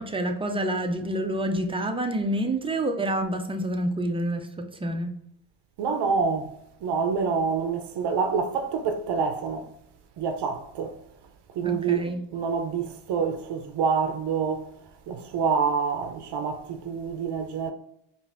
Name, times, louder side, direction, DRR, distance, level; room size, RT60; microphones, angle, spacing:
voice 1, 0.0-4.5 4.8-5.1 11.6-12.2, right 1 dB, 10° right, 0.4 m, -27 dB
voice 2, 5.8-9.7 10.2-11.0 11.5-12.0 12.3-14.7 15.1-17.7, right 5 dB, 55° right, 0.6 m, -27 dB
4.9 x 2.6 x 2.5 m
cardioid pair, 100°, 48 cm